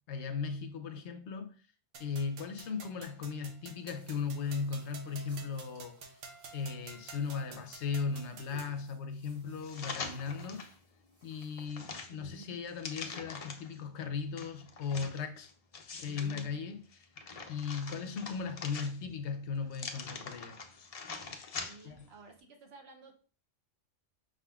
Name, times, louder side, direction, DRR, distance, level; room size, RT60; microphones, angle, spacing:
voice 1, 0.1-1.6 2.0-6.0 6.5-10.6 11.2-15.5 16.0-17.1 17.5-20.6 21.8-22.1, left 5 dB, 70° left, 0.8 m, -37 dB
sound 1, 1.9-8.8, right 4 dB, 80° right, 1.0 m, -51 dB
sound 2, 3.9-11.7, right 2 dB, 30° right, 1.0 m, -62 dB
sound 3, 9.6-10.7 11.2-13.8 14.4-16.5 16.9-19.2 19.7-22.0 22.4-22.5, left 4 dB, 55° left, 0.4 m, -44 dB
voice 2, 21.6-23.1, right 3 dB, 60° right, 1.0 m, -54 dB
5.2 x 3.6 x 2.2 m
omnidirectional pair, 1.2 m